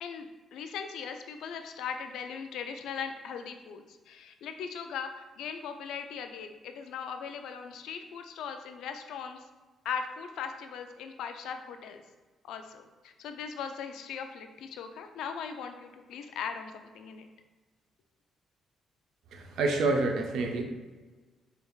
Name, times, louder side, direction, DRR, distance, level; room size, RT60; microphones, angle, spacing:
voice 1, 0.5-9.4 9.8-12.0 12.5-17.3, left 6 dB, 80° left, 7 dB, 0.3 m, -39 dB
voice 2, 19.3-20.6, right 3 dB, 80° right, 3 dB, 0.5 m, -28 dB
4.6 x 3.3 x 2.3 m, 1.3 s
cardioid pair, 90°, 0 cm